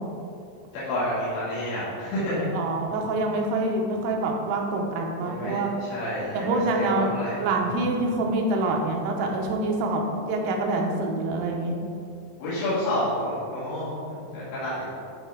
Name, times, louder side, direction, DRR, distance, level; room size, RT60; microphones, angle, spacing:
voice 1, 0.7-2.5 5.2-7.4 12.4-14.9, left 1 dB, 80° left, -11 dB, 4.7 m, -29 dB
voice 2, 2.5-5.7 6.3-7.1 7.4-10.0 10.3-11.8, right 2 dB, 85° right, 1 dB, 3.6 m, -26 dB
13.5 x 4.9 x 5.0 m, 2.5 s
omnidirectional pair, 5.7 m